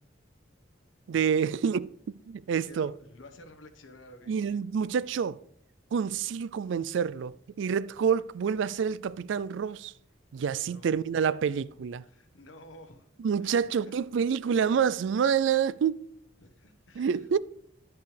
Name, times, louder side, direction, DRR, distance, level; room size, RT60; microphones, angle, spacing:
voice 1, 1.1-1.9 2.3-2.9 4.3-5.4 5.9-9.9 10.3-12.0 13.2-16.1 17.0-17.4, right 7 dB, 70° right, 0.3 m, -27 dB
voice 2, 2.5-4.3 10.6-11.0 12.1-13.1 13.4-14.0 16.4-17.3, left 1 dB, 80° left, 1.2 m, -52 dB
10.5 x 8.1 x 3.3 m
head